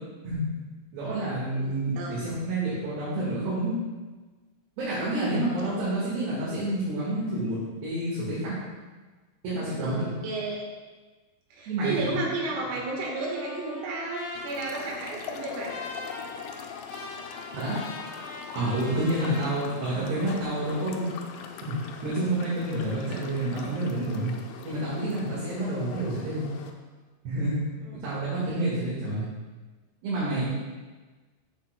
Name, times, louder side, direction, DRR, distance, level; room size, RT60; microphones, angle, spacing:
voice 1, 0.2-0.6 0.9-3.8 4.8-8.5 9.4-10.1 11.7-12.2 17.5-17.8 18.6-21.1 21.6-21.8 22.0-24.3 24.7-26.5 27.3-27.6 27.9-29.3 30.0-30.5, right 1 dB, 60° right, -8 dB, 3.4 m, -29 dB
voice 2, 1.5-2.2 5.1-5.4 9.8-10.7 11.5-15.8 18.9-19.1 27.8-28.0 28.5-28.7 30.4-30.5, right 3 dB, 85° right, -2 dB, 4.2 m, -33 dB
Trumpet, 12.9-19.6, left 2 dB, 75° left, 4.3 m, -42 dB
sound 1, 14.4-26.7, left 7 dB, 90° left, 2.4 m, -42 dB
12.5 x 7.3 x 2.2 m, 1.3 s
omnidirectional pair, 5.8 m